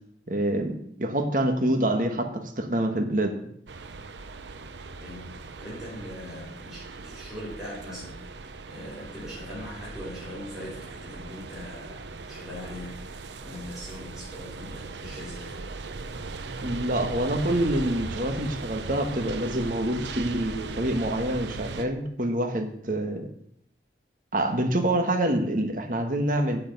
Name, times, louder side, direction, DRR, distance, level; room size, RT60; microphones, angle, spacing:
voice 1, 0.3-2.3 2.6-3.3 16.6-23.3 24.3-26.6, right 1 dB, 50° right, 6 dB, 1.3 m, -26 dB
sound 1, 3.7-21.9, right 3 dB, 85° right, 0.7 m, -38 dB
voice 2, 5.0-12.9 13.4-15.5, equal, 5° right, -10 dB, 4.3 m, -41 dB
9.2 x 8.4 x 5.3 m, 0.71 s
head